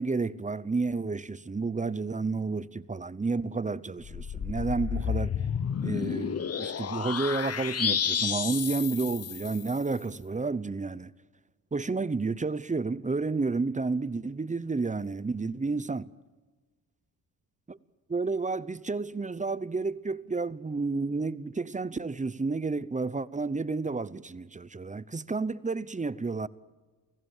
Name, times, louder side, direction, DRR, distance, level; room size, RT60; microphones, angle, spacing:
voice 1, 0.0-5.3 5.8-11.1 11.7-16.1 17.7-17.8 18.1-26.5, right 3 dB, 20° right, 0.8 m, -31 dB
sound 1, 4.0-9.8, left 7 dB, 45° left, 0.9 m, -31 dB
28.5 x 17.5 x 7.3 m
cardioid pair, 95°, 36 cm